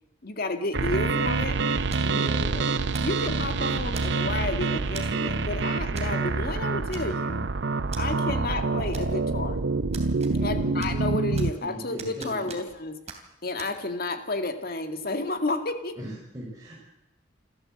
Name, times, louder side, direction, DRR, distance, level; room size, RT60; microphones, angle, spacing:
voice 1, 0.2-1.6 2.1-7.5 8.0-9.6 10.4-13.0 13.4-16.0, left 2 dB, 55° left, 7 dB, 2.1 m, -31 dB
sound 1, 0.7-11.5, right 3 dB, 70° right, 0.7 m, -27 dB
sound 2, 1.9-2.2 2.9-3.2 3.9-4.4 4.9-5.2 5.9-6.1 6.4-6.5 6.9-7.4 7.9-8.0 8.9-9.4 9.9-10.5 10.8-11.6 12.0-12.8 13.1-13.2 13.6-13.7, right 5 dB, 35° right, 3.0 m, -42 dB
voice 2, 2.0-2.6 10.2-10.9 11.4-12.5 16.0-16.8, right 1 dB, 20° right, -5 dB, 5.7 m, -38 dB
27.5 x 13.5 x 7.8 m, 0.88 s
head